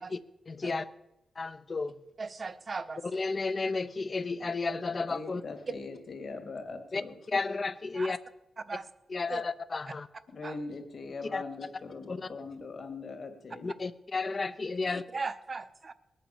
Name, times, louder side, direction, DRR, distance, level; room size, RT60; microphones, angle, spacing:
voice 1, 0.5-0.9 1.4-2.0 3.0-5.4 6.9-7.0 7.3-8.2 9.1-10.1 11.3-11.4 12.1-12.3 13.6-15.0, left 3 dB, 40° left, 13 dB, 0.7 m, -32 dB
voice 2, 2.2-3.0 7.9-8.2 8.7-8.9 9.3-9.4 10.4-10.6 14.8-15.9, right 4 dB, 40° right, 12 dB, 1.0 m, -38 dB
voice 3, 5.1-7.2 10.3-13.7, left 3 dB, 55° left, 4 dB, 2.6 m, -41 dB
20.5 x 9.1 x 7.0 m, 0.95 s
cardioid pair, 95°, 0 cm